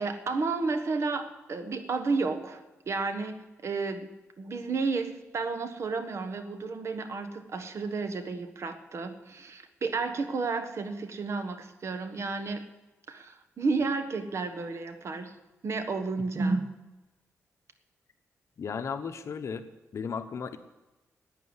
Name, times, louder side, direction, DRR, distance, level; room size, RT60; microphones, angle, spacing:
voice 1, 0.0-12.7 13.1-15.3 15.6-16.6, right 4 dB, 55° right, 8 dB, 1.4 m, -32 dB
voice 2, 18.6-19.7 19.9-20.6, left 6 dB, 60° left, 9 dB, 1.1 m, -35 dB
11.5 x 9.2 x 9.7 m, 1.1 s
wide cardioid pair, 115°, 6 cm